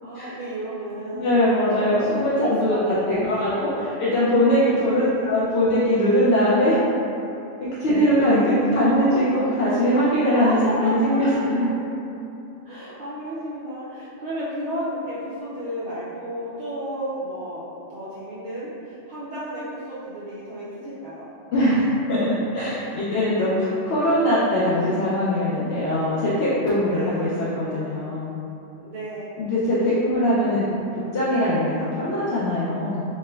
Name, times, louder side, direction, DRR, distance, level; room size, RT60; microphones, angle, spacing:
voice 1, 0.0-3.9 4.9-5.6 7.8-8.3 8.7-9.9 10.3-11.7 12.6-17.6 17.9-21.3 26.8-27.4 28.8-29.3, equal, 60° right, -10 dB, 0.5 m, -33 dB
voice 2, 1.2-6.8 7.6-11.3 21.5-22.2 22.5-27.3 27.5-28.3 29.4-30.7 31.1-33.0, equal, 65° left, -10 dB, 0.7 m, -21 dB
4.2 x 2.1 x 2.2 m, 2.8 s
omnidirectional pair, 1.2 m